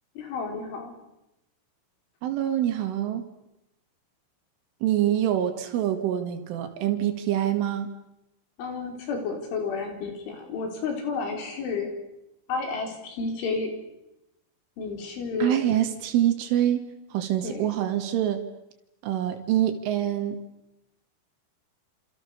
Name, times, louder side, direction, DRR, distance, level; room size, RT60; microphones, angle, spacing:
voice 1, 0.2-1.0 8.6-11.9 12.5-13.7 14.8-15.6 17.4-17.7, left 4 dB, 75° left, 4 dB, 7.0 m, -31 dB
voice 2, 2.2-3.2 4.8-7.9 15.4-16.8 17.1-18.4 19.0-20.4, right 11 dB, 85° right, 6 dB, 4.5 m, -25 dB
28.0 x 28.0 x 6.8 m, 0.89 s
omnidirectional pair, 5.5 m